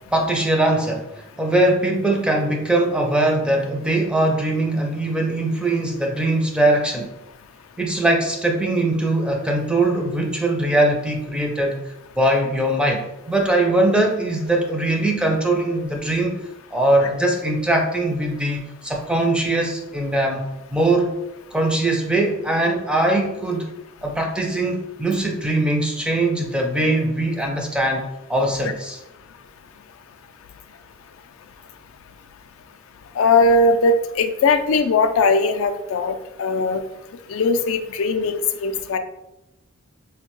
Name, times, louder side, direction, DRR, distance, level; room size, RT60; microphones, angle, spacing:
voice 1, 0.1-7.1 7.8-11.8 12.2-16.4 16.7-20.5 20.7-21.1 21.5-23.7 24.0-28.0 28.3-29.0, right 1 dB, 5° right, 1 dB, 0.4 m, -21 dB
voice 2, 33.2-36.1 36.4-36.8 37.3-39.0, left 3 dB, 70° left, 8 dB, 0.3 m, -19 dB
4.3 x 2.2 x 3.0 m, 0.92 s
head